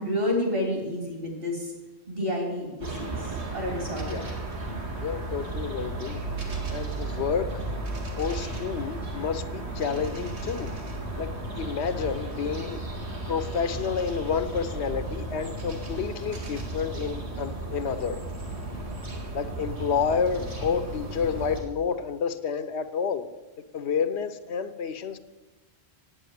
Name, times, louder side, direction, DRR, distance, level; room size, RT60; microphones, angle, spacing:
voice 1, 0.0-1.7 2.1-3.2 3.5-4.2, left 1 dB, 60° right, 0 dB, 3.5 m, -29 dB
sound 1, 2.8-21.6, right 2 dB, 85° right, 2.2 m, -34 dB
voice 2, 5.0-6.2 6.7-7.5 8.2-10.7 11.2-12.8 13.3-18.2 19.3-23.3 23.7-25.2, left 6 dB, 85° left, 11 dB, 1.1 m, -29 dB
9.0 x 8.5 x 9.2 m, 1.1 s
omnidirectional pair, 1.1 m